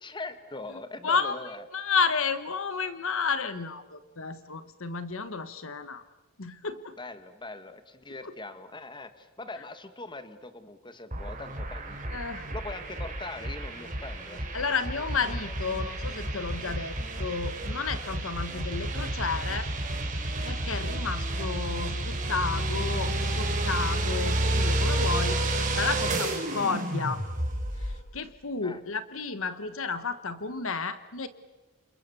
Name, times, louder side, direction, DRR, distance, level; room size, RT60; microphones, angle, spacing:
voice 1, 0.0-1.6 7.0-12.2 12.5-14.5 15.4-15.5 28.6-28.8, left 2 dB, 20° left, 10 dB, 1.6 m, -41 dB
voice 2, 1.0-1.3 1.7-6.0 6.4-7.0 8.2-8.3 12.1-12.5 14.5-19.7 20.4-27.2 27.8-31.3, left 5 dB, 65° left, 12 dB, 1.2 m, -32 dB
sound 1, 11.1-28.0, right 1 dB, 35° right, 4.3 m, -30 dB
29.5 x 27.5 x 7.0 m, 1.1 s
head